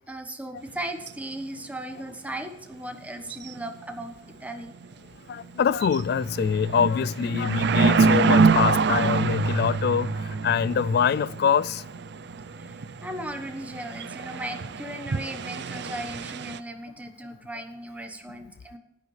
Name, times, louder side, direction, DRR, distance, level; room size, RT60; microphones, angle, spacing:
voice 1, 0.1-4.1 4.4-4.7 13.0-18.8, right 1 dB, 10° right, 1.2 m, -37 dB
sound 1, 0.7-0.8 1.1-1.2 3.3-3.7 4.0-4.1 4.6-4.9 5.4-5.5 5.7-16.6, right 4 dB, 65° right, 0.5 m, -26 dB
voice 2, 5.3-11.8, left 7 dB, 55° left, 0.3 m, -24 dB
15.5 x 10.5 x 3.3 m
head